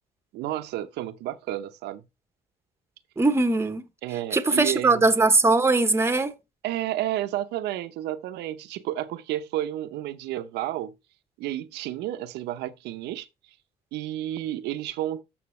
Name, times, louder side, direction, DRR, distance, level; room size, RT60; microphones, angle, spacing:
voice 1, 0.3-2.0 4.0-5.1 6.6-10.9 11.4-13.3 13.9-15.2, right 13 dB, 85° right, 0.8 m, -31 dB
voice 2, 3.2-3.8 4.3-6.3, right 3 dB, 15° right, 1.0 m, -20 dB
13.0 x 5.9 x 3.2 m
cardioid pair, 110°, 17 cm